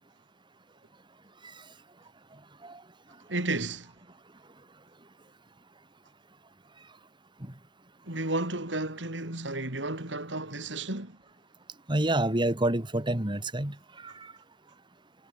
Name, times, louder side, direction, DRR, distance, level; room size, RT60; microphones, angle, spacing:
voice 1, 3.3-3.9 8.1-11.2, right 2 dB, 90° right, 5.0 m, -32 dB
voice 2, 11.9-14.3, right 1 dB, 25° right, 2.1 m, -28 dB
head